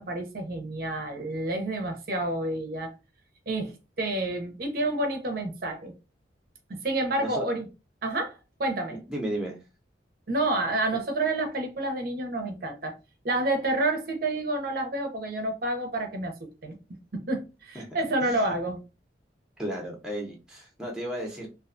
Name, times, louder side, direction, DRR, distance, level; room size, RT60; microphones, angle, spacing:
voice 1, 0.0-2.9 3.5-5.9 6.7-7.7 8.0-9.0 10.3-12.9 13.2-16.3 16.6-16.7 17.1-18.8, right 2 dB, 50° right, 0.5 m, -29 dB
voice 2, 8.9-9.6 17.7-17.9 18.2-18.5 19.6-21.5, right 1 dB, 5° right, 0.6 m, -34 dB
2.4 x 2.2 x 2.5 m
head